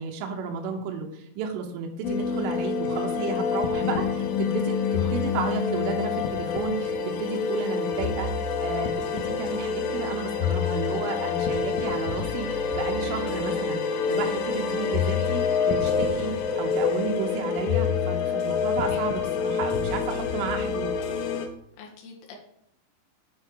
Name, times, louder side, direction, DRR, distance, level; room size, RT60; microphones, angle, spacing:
voice 1, 0.0-8.3 8.6-20.9, right 5 dB, 80° right, 1 dB, 3.5 m, -32 dB
sound 1, 2.0-21.5, left 6 dB, 90° left, 3.5 m, -27 dB
voice 2, 18.8-19.1 19.5-19.6 21.8-22.4, left 5 dB, 70° left, 0 dB, 3.9 m, -45 dB
8.7 x 6.3 x 4.8 m, 0.71 s
omnidirectional pair, 5.7 m